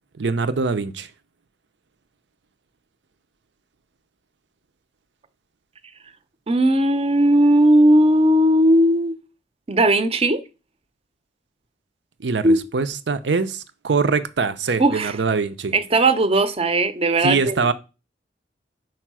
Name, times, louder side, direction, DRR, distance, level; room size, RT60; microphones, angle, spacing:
voice 1, 0.2-1.1 12.2-15.7 17.2-17.7, right 4 dB, 80° right, 0.6 m, -23 dB
voice 2, 6.5-9.2 9.7-10.4 12.4-12.6 14.8-15.2 15.7-17.5, right 1 dB, 35° right, 0.6 m, -17 dB
4.8 x 4.5 x 6.1 m
head